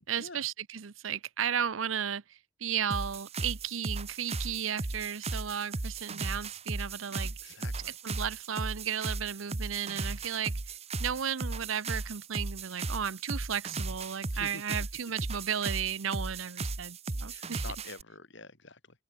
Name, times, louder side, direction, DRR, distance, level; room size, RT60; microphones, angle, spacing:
voice 1, 0.1-7.5 8.0-17.6, right 8 dB, 75° right, 0.7 m, -34 dB
sound 1, 2.9-18.0, right 3 dB, 30° right, 0.9 m, -36 dB
voice 2, 7.0-8.0 14.3-14.7 17.3-19.0, left 3 dB, 60° left, 6.0 m, -47 dB
head